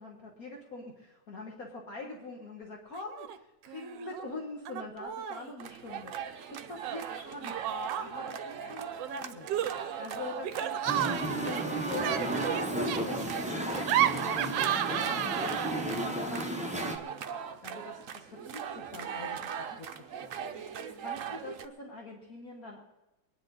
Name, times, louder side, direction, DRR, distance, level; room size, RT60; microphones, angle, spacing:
voice 1, 0.0-7.5 8.0-9.5 10.0-10.8 11.4-15.9 16.3-17.2 17.6-22.8, left 3 dB, 50° left, 0 dB, 1.8 m, -44 dB
Laughter, 2.9-3.4 3.6-4.3 4.7-5.5 6.8-8.3 9.0-15.9, right 11 dB, 75° right, 1.2 m, -33 dB
sound 1, 5.6-21.7, right 8 dB, 55° right, 0.9 m, -39 dB
Musical instrument, 10.9-17.0, right 1 dB, 10° right, 0.4 m, -33 dB
23.0 x 10.0 x 4.0 m, 0.97 s
omnidirectional pair, 2.0 m